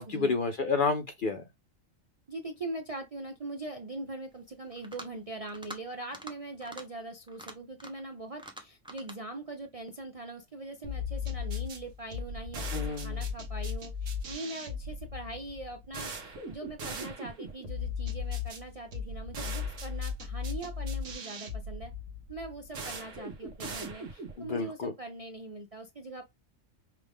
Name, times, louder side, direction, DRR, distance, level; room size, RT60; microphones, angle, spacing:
voice 1, 0.0-1.4 12.7-13.2 24.4-24.9, left 4 dB, 55° left, 0.6 m, -30 dB
voice 2, 2.3-21.9 22.3-26.2, right 2 dB, 45° right, 0.4 m, -42 dB
sound 1, 4.7-5.2 5.5-5.8 6.1-6.3 6.6-6.8 7.3-8.1 8.4-9.2, right 1 dB, 5° right, 0.6 m, -45 dB
sound 2, 10.8-24.4, left 4 dB, 70° right, 1.4 m, -37 dB
5.7 x 2.5 x 3.5 m
omnidirectional pair, 1.4 m